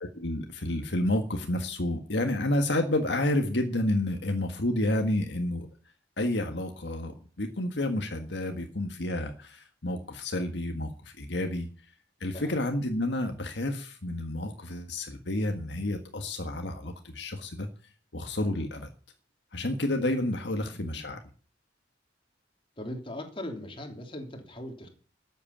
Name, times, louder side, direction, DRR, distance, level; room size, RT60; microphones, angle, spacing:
voice 1, 0.0-5.7 6.2-11.7 12.2-17.7 18.1-18.9 19.5-21.2, left 1 dB, 70° left, 5 dB, 1.7 m, -30 dB
voice 2, 20.7-21.1 22.8-24.9, left 1 dB, 30° left, 3 dB, 3.3 m, -40 dB
13.0 x 8.4 x 8.6 m, 0.39 s
head